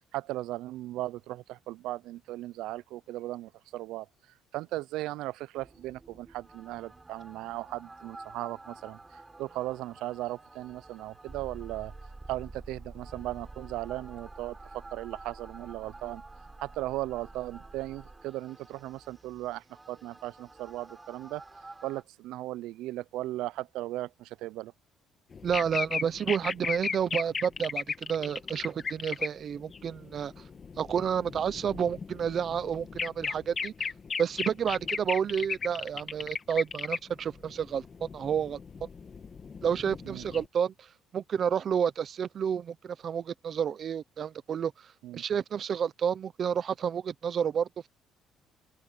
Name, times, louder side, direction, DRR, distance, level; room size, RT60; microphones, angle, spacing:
voice 1, 0.1-4.1 4.5-11.9 12.3-16.2 16.6-21.4 21.8-24.7 40.0-40.3 45.0-45.2, right 16 dB, 85° right, 0.4 m, -37 dB
sound 1, 5.6-22.0, right 2 dB, 10° right, 4.0 m, -49 dB
sound 2, 25.3-29.3 29.5-40.5, left 5 dB, 25° left, 1.4 m, -36 dB
voice 2, 25.4-30.4 30.8-33.9 34.2-38.9 39.6-47.7, right 8 dB, 35° right, 0.6 m, -30 dB
open air
cardioid pair, 180°, 0 cm